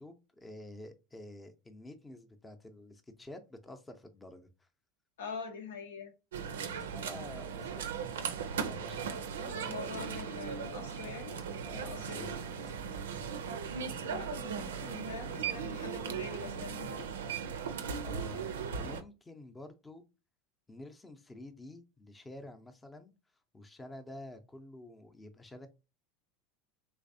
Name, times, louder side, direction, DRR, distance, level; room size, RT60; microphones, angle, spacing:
voice 1, 0.0-4.7 6.7-8.2 8.6-9.4 11.6-12.4 12.9-13.3 18.0-20.1 20.7-23.1 23.5-25.7, left 1 dB, 15° left, 0.6 m, -49 dB
voice 2, 5.2-6.1 9.4-11.4 11.7-12.3 14.1-17.1, left 5 dB, 80° left, 0.8 m, -44 dB
sound 1, 6.3-19.0, right 6 dB, 85° right, 0.4 m, -38 dB
3.3 x 3.3 x 2.6 m
hypercardioid pair, 85°, 0 cm